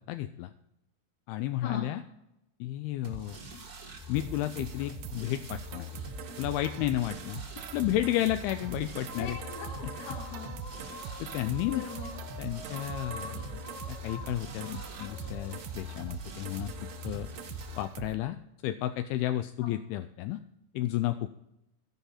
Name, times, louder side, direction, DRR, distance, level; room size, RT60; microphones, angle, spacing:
voice 1, 0.1-0.5 1.3-2.0 2.6-3.4 4.1-5.9 6.4-7.4 7.7-9.4 11.2-11.8 12.4-13.6 13.9-16.7 17.0-17.3 17.8-18.4 18.6-20.4 20.7-21.3, left 14 dB, 85° left, 10 dB, 2.2 m, -32 dB
sound 1, 3.0-17.8, left 2 dB, 55° right, 1.0 m, -44 dB
sound 2, 4.2-18.2, right 9 dB, 85° right, 2.6 m, -43 dB
voice 2, 9.1-10.5 11.7-12.1 19.6-19.7, left 6 dB, 60° left, 0 dB, 2.6 m, -40 dB
sound 3, 9.1-15.6, left 1 dB, 20° left, 1.4 m, -46 dB
16.0 x 5.8 x 4.2 m, 0.85 s
omnidirectional pair, 4.9 m